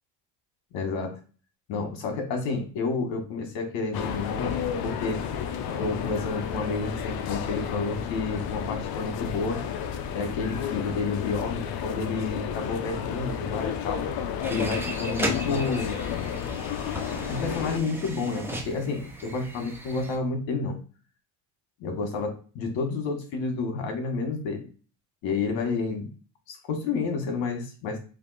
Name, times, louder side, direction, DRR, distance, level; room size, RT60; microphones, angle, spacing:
voice 1, 0.7-1.1 1.7-5.2 5.7-9.6 10.1-14.0 14.5-16.0 17.3-20.8 21.8-22.3 22.5-24.6 25.2-26.1 26.5-28.0, left 4 dB, 80° left, 4 dB, 1.4 m, -30 dB
sound 1, 3.9-17.8, left 8 dB, 55° left, 0.6 m, -32 dB
sound 2, 14.4-20.2, right 1 dB, 5° right, 0.7 m, -36 dB
3.4 x 2.6 x 4.0 m, 0.38 s
cardioid pair, 110°, 44 cm